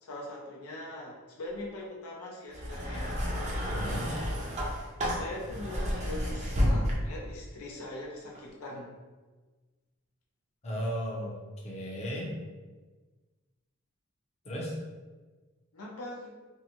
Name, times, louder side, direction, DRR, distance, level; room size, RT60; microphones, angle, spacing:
voice 1, 0.0-3.2 5.1-9.0 15.7-16.3, left 1 dB, 90° left, -2 dB, 0.6 m, -41 dB
sound 1, 2.5-7.3 8.3-8.4, equal, 35° right, 0.5 m, -31 dB
voice 2, 3.7-4.1 10.6-11.3 11.6-12.3 14.4-14.7, equal, 30° left, -4 dB, 0.6 m, -34 dB
2.6 x 2.1 x 2.9 m, 1.3 s
head